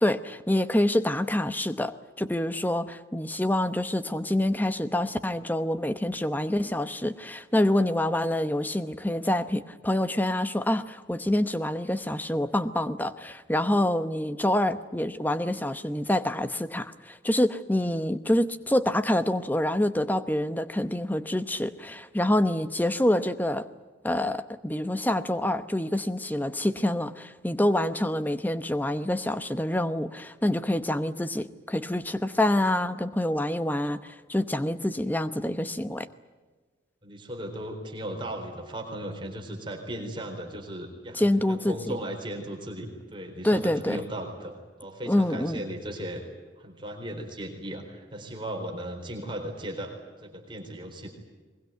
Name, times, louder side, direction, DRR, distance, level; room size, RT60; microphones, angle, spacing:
voice 1, 0.0-23.7 24.0-36.1 41.1-42.0 43.4-44.0 45.1-45.6, left 1 dB, 10° left, 12 dB, 0.8 m, -26 dB
voice 2, 37.0-46.2 46.6-49.9 50.2-51.1, right 1 dB, 25° right, 2 dB, 4.0 m, -37 dB
22.5 x 21.5 x 9.3 m, 1.4 s
head